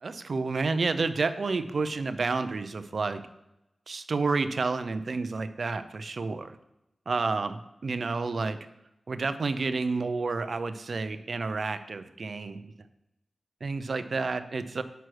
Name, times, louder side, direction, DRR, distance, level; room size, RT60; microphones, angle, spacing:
voice 1, 0.0-3.2 3.9-6.6 7.1-8.6 9.1-12.7 13.6-14.8, right 4 dB, 65° right, 11 dB, 0.6 m, -30 dB
7.9 x 6.2 x 4.7 m, 0.88 s
cardioid pair, 40°, 0 cm